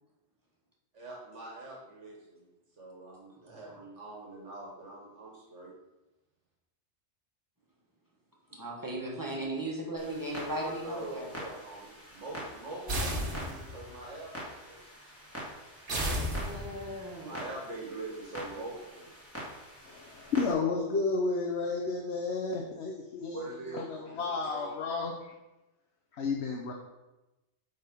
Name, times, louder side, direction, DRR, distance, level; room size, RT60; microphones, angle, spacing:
voice 1, 0.9-2.5 2.8-5.7 10.5-14.9 17.2-19.1 23.3-24.8, right 2 dB, 90° right, -2 dB, 1.9 m, -43 dB
voice 2, 8.5-11.3 16.3-17.4, right 1 dB, 15° right, -2 dB, 1.5 m, -37 dB
Clock, 10.0-20.5, equal, 10° left, 2.3 m, -46 dB
sound 1, 12.9-13.9 15.9-17.0, equal, 50° right, 1.4 m, -33 dB
voice 3, 19.8-25.3 26.1-26.7, left 4 dB, 70° left, 1 dB, 1.1 m, -32 dB
9.1 x 4.1 x 5.3 m, 1.0 s
omnidirectional pair, 1.2 m